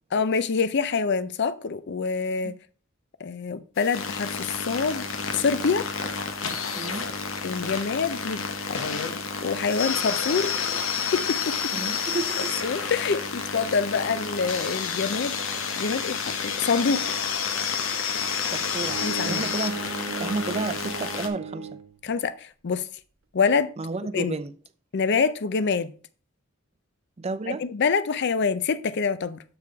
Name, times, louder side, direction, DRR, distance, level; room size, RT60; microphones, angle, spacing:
voice 1, 0.1-2.5 3.2-5.0 5.3-5.9 7.4-8.4 8.7-10.5 11.1-11.6 12.6-17.0 19.0-19.5 22.0-22.9 23.3-23.7 24.1-24.4 24.9-25.9 27.5-29.4, left 5 dB, 55° left, 0.5 m, -26 dB
sound 1, 3.8-21.3, left 6 dB, 75° left, 1.0 m, -30 dB
voice 2, 6.8-7.1 11.7-12.5 18.5-21.7 23.8-24.5 27.2-27.6, right 3 dB, 30° right, 0.5 m, -32 dB
Bowed string instrument, 18.8-22.0, right 4 dB, 70° right, 0.8 m, -36 dB
6.8 x 4.8 x 4.6 m
head